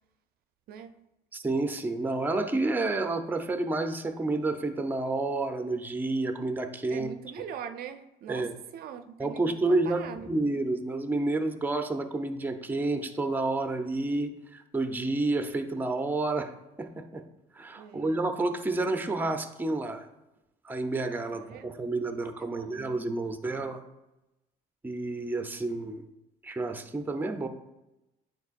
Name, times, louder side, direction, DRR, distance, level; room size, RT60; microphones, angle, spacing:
voice 1, 1.3-7.1 8.3-8.5 9.2-16.5 16.8-17.2 17.5-20.0 20.6-23.8 24.8-26.0 26.4-27.5, right 2 dB, 10° right, 0.6 m, -30 dB
voice 2, 6.9-10.3 17.7-18.2 21.3-21.7 22.0-23.0, right 8 dB, 65° right, 0.4 m, -42 dB
9.3 x 4.6 x 2.4 m
cardioid pair, 110°, 17 cm